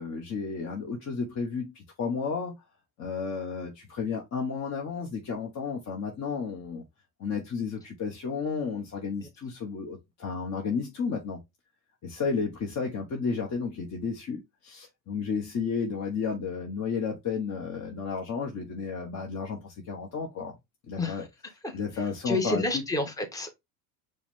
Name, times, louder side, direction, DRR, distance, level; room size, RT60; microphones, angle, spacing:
voice 1, 0.0-2.6 3.0-6.8 7.2-11.4 12.0-20.5 20.9-21.3 21.7-22.6, left 5 dB, 35° left, 1.1 m, -32 dB
voice 2, 21.6-23.5, left 2 dB, 5° left, 1.1 m, -30 dB
4.8 x 2.5 x 3.6 m
hypercardioid pair, 95°, 48 cm